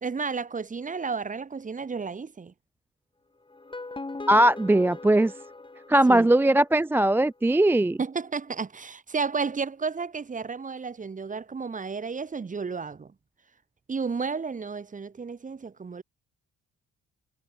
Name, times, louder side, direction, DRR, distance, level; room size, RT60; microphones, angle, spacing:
voice 1, 0.0-2.5 6.1-6.3 8.0-13.1 13.9-16.0, right 5 dB, 25° right, 1.2 m, -32 dB
sound 1, 3.5-6.7, left 3 dB, 15° left, 2.3 m, -40 dB
voice 2, 4.3-5.3 5.9-8.0, right 1 dB, 10° right, 0.3 m, -20 dB
cardioid pair, 90°, 30 cm